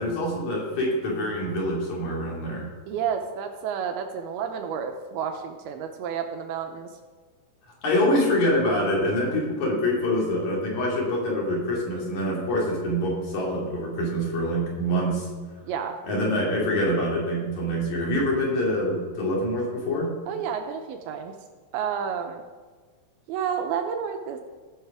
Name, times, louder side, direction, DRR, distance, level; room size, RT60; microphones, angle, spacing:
voice 1, 0.0-2.7 7.8-15.3 16.1-20.1, left 1 dB, 50° left, -4 dB, 3.5 m, -25 dB
voice 2, 2.9-6.9 12.3-12.4 15.6-16.0 20.3-21.4 21.7-22.4 23.3-24.4, right 7 dB, 80° right, 5 dB, 2.5 m, -30 dB
16.5 x 6.4 x 4.8 m, 1.4 s
omnidirectional pair, 4.7 m